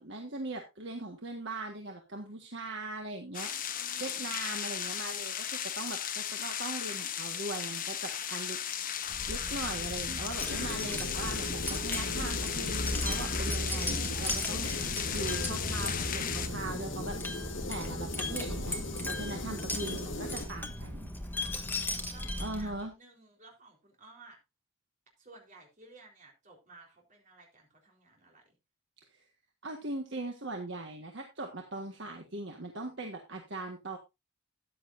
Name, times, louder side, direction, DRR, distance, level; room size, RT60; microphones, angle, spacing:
voice 1, 0.0-3.5 4.0-8.9 9.3-17.4 17.7-18.8 19.0-21.1 22.4-22.9 29.1-29.2 29.6-34.0, right 2 dB, 55° right, 3 dB, 1.6 m, -40 dB
sound 1, 3.3-16.5, left 9 dB, 40° left, 1.1 m, -36 dB
voice 2, 3.6-4.5 22.1-24.4 25.2-28.6, right 2 dB, 35° right, 1 dB, 4.0 m, -56 dB
Wind chime, 9.1-22.8, left 1 dB, 10° left, 1.3 m, -36 dB
sound 2, 10.4-20.4, left 2 dB, 60° left, 2.6 m, -39 dB
13.5 x 10.0 x 2.6 m, 0.24 s
head